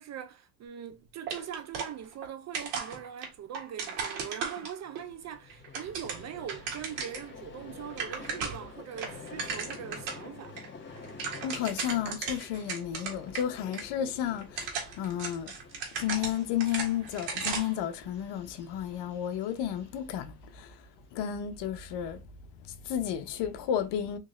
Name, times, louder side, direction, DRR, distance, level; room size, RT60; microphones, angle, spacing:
voice 1, 0.0-10.6, right 9 dB, 35° right, 0.4 m, -42 dB
sound 1, 1.3-2.3 2.5-5.0 5.5-7.3 7.6-7.7 7.9-8.7 9.0-10.2 10.6-10.7 11.0-13.4 13.7-13.8 14.4-17.8, right 5 dB, 70° right, 1.7 m, -36 dB
Vehicle, 4.8-21.2, left 4 dB, 20° left, 1.3 m, -49 dB
voice 2, 11.4-15.5 15.9-20.8 21.1-22.2 22.6-24.2, left 10 dB, 60° left, 0.8 m, -32 dB
3.8 x 3.1 x 2.5 m
supercardioid pair, 95°, 49 cm